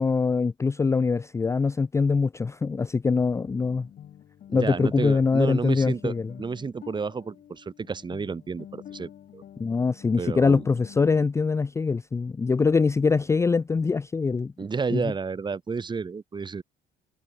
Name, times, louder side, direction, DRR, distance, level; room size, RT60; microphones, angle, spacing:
voice 1, 0.0-3.9 4.5-6.3 9.6-14.5 14.9-15.0, left 4 dB, 15° left, 0.4 m, -23 dB
sound 1, 3.4-11.1, left 10 dB, 55° left, 2.3 m, -48 dB
voice 2, 4.5-9.4 10.2-10.7 14.6-16.6, right 5 dB, 25° right, 2.2 m, -31 dB
cardioid pair, 110°, 17 cm